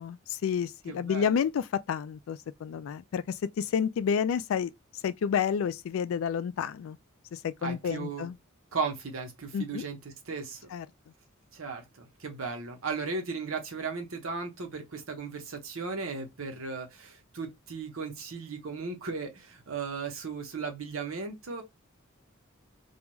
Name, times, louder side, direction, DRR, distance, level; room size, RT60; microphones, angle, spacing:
voice 1, 0.0-4.7 5.0-7.0 7.3-8.4 9.5-9.9 10.7-10.9, left 7 dB, 75° left, 0.3 m, -30 dB
voice 2, 0.9-1.4 7.6-8.3 8.7-10.7 11.5-21.6, right 4 dB, 80° right, 0.8 m, -36 dB
2.4 x 2.3 x 2.9 m
head